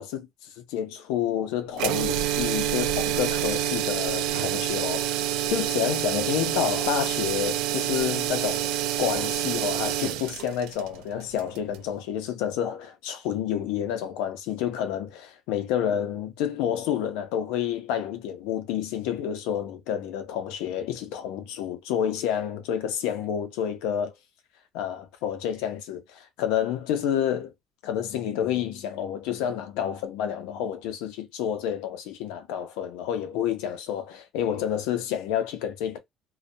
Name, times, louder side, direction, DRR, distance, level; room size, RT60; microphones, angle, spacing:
voice 1, 0.0-5.2 5.5-8.7 9.0-24.1 24.7-27.5 27.8-36.0, left 9 dB, 90° left, 0.6 m, -29 dB
sound 1, 1.7-11.9, right 12 dB, 90° right, 0.4 m, -27 dB
2.3 x 2.0 x 2.7 m
cardioid pair, 130°, 0 cm